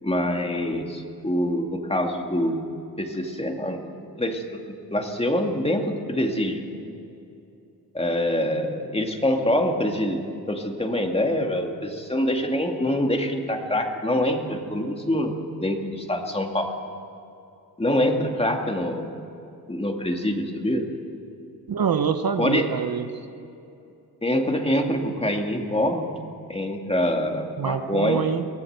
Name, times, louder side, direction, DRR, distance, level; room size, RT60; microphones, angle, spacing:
voice 1, 0.0-2.7 3.0-3.8 4.2-4.6 4.9-6.6 7.9-16.7 17.8-19.1 19.7-20.9 22.4-22.7 24.2-26.1 26.5-28.3, left 1 dB, 15° left, 3 dB, 2.3 m, -25 dB
voice 2, 21.7-23.1 27.6-28.5, right 7 dB, 60° right, 8 dB, 1.1 m, -25 dB
23.5 x 18.5 x 8.1 m, 2.7 s
wide cardioid pair, 135°, 41 cm